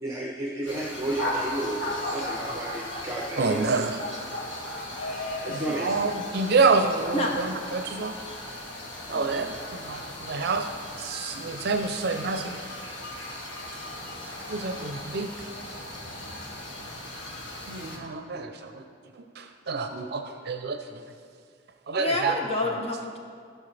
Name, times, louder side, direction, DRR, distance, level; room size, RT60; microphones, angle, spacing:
voice 1, 0.0-3.6 5.4-6.0, right 1 dB, 15° right, -2 dB, 0.8 m, -32 dB
sound 1, 0.7-18.0, left 1 dB, 75° left, 1.8 m, -36 dB
voice 2, 3.4-4.0 5.5-8.1 9.1-10.7 11.0-12.6 14.5-15.3 17.7-18.8 19.4-21.0 21.9-22.3 22.8-22.9, right 4 dB, 60° right, 6 dB, 0.6 m, -27 dB
voice 3, 22.0-23.2, left 2 dB, 35° left, 1 dB, 0.8 m, -29 dB
16.0 x 6.3 x 3.3 m, 2.1 s
head